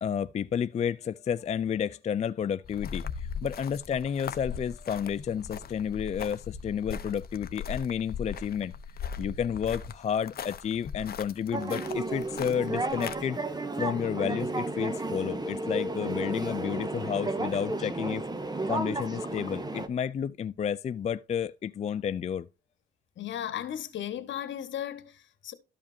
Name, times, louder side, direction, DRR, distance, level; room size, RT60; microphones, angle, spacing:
voice 1, 0.0-8.7 9.2-13.4 13.8-18.3 18.7-22.5, left 8 dB, 35° left, 0.4 m, -31 dB
sound 1, 2.6-13.2, left 6 dB, 50° left, 0.8 m, -39 dB
sound 2, 11.5-19.9, right 2 dB, 20° right, 1.4 m, -33 dB
voice 2, 23.2-25.5, left 10 dB, 70° left, 1.5 m, -36 dB
13.5 x 5.0 x 2.8 m
cardioid pair, 90°, 20 cm